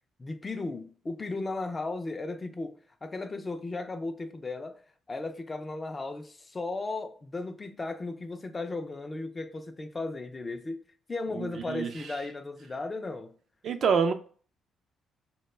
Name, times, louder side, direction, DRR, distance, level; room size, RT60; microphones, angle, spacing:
voice 1, 0.2-4.8 5.1-13.4, left 3 dB, 25° left, 0.3 m, -36 dB
voice 2, 11.3-11.9 13.6-14.1, right 6 dB, 60° right, 0.3 m, -26 dB
2.1 x 2.1 x 3.1 m
cardioid pair, 90°, 0 cm